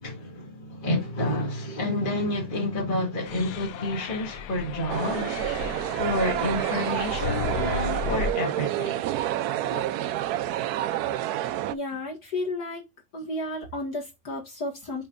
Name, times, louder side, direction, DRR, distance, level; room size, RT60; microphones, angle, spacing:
voice 1, 0.0-9.3 9.6-9.9, left 1 dB, 25° left, 2.2 m, -30 dB
sound 1, 3.3-8.3, left 6 dB, 70° left, 1.0 m, -34 dB
sound 2, 4.9-11.7, right 13 dB, 80° right, 0.8 m, -28 dB
voice 2, 11.7-12.9 13.1-15.1, left 2 dB, 50° left, 2.3 m, -32 dB
10.0 x 4.5 x 2.5 m
omnidirectional pair, 2.2 m